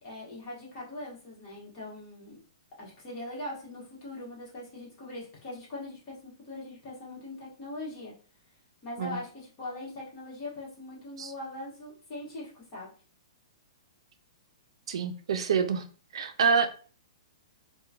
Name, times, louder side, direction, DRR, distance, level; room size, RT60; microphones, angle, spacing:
voice 1, 0.0-2.4 2.8-8.1 8.8-12.9, left 2 dB, 30° left, -5 dB, 1.2 m, -41 dB
voice 2, 14.9-15.8 16.1-16.7, right 6 dB, 70° right, 7 dB, 0.4 m, -26 dB
2.8 x 2.2 x 2.4 m, 0.39 s
hypercardioid pair, 165°, 3 cm